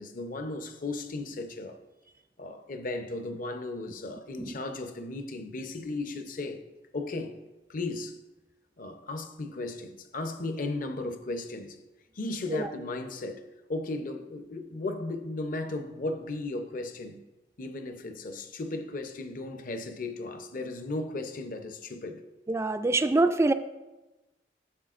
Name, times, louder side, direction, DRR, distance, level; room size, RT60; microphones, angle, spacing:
voice 1, 0.0-1.8 2.4-6.6 6.9-7.4 7.7-8.2 8.8-11.8 12.1-17.2 17.6-22.2, left 2 dB, 50° left, 0.7 m, -36 dB
voice 2, 22.5-23.5, right 2 dB, 15° right, 0.3 m, -25 dB
12.0 x 7.6 x 2.5 m
head